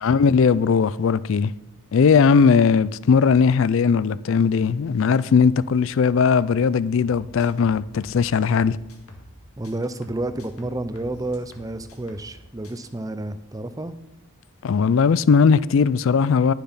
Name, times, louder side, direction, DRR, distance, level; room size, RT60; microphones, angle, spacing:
voice 1, 0.0-1.5 1.9-8.8 14.6-16.5, left 5 dB, 60° left, 0.3 m, -18 dB
sound 1, 7.0-9.4 9.6-12.4 12.6-12.9, left 1 dB, 80° left, 2.0 m, -46 dB
voice 2, 9.6-13.9, right 2 dB, 15° right, 0.5 m, -30 dB
11.5 x 7.0 x 5.6 m
head